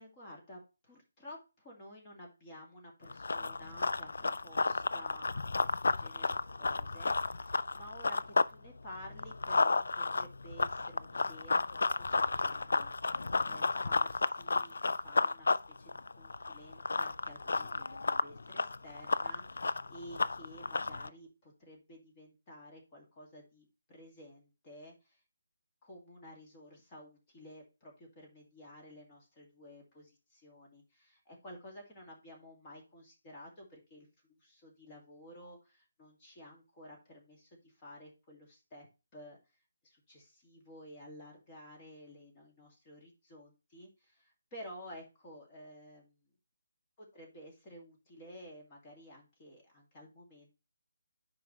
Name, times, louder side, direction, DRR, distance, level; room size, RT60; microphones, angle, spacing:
voice 1, 0.0-25.2 25.8-34.1 34.4-38.9 39.1-39.4 39.8-46.2 47.0-50.6, equal, 25° left, -1 dB, 2.2 m, -53 dB
Run, 3.1-8.5 8.9-21.1, left 3 dB, 65° left, 0.4 m, -32 dB
9.2 x 5.2 x 3.2 m, 0.29 s
figure-of-eight pair, 150°, 0 cm